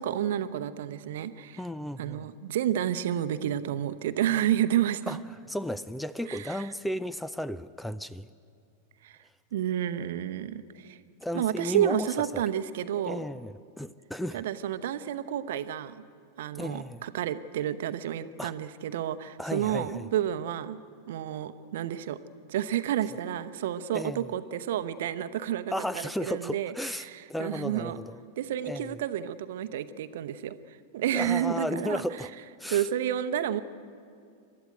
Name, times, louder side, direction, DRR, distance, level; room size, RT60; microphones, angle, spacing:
voice 1, 0.0-1.6 2.0-5.2 6.3-6.7 9.0-9.2 9.5-11.0 11.3-13.2 14.3-16.0 16.4-20.8 21.1-22.2 22.5-26.7 27.0-28.0 28.4-32.0 32.7-33.6, right 10 dB, 55° right, 11 dB, 0.8 m, -30 dB
voice 2, 1.6-2.3 5.1-5.2 5.5-8.3 11.2-12.4 13.0-14.4 16.5-17.0 18.4-18.5 19.4-20.1 23.9-24.3 25.7-28.2 28.6-29.0 31.1-32.3 32.6-32.9, left 1 dB, 5° left, 17 dB, 0.5 m, -34 dB
28.5 x 12.5 x 9.1 m, 2.4 s
figure-of-eight pair, 90°, 0 cm